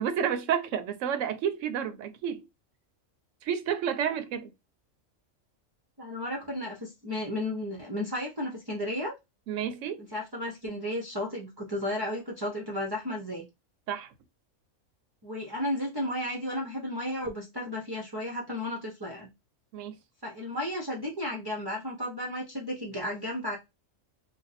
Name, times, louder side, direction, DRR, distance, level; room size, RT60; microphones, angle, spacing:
voice 1, 0.0-2.4 3.4-4.5 9.5-10.1 13.9-14.1 19.7-19.9, right 8 dB, 80° right, 0.9 m, -30 dB
voice 2, 6.0-9.1 10.0-13.4 15.2-19.3 20.2-23.6, left 1 dB, 25° right, 0.5 m, -33 dB
2.6 x 2.2 x 4.0 m
omnidirectional pair, 1.3 m